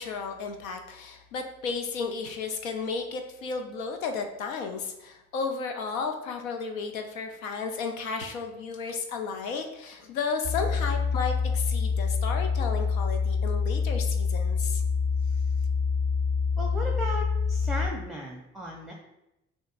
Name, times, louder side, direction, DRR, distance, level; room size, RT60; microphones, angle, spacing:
voice 1, 0.0-14.8, left 5 dB, 85° left, 5 dB, 0.5 m, -33 dB
sound 1, 10.4-17.9, left 5 dB, 55° left, 0.9 m, -26 dB
voice 2, 16.6-18.9, equal, ahead, 0 dB, 0.6 m, -35 dB
6.3 x 2.6 x 2.5 m, 0.89 s
hypercardioid pair, 45°, 40 cm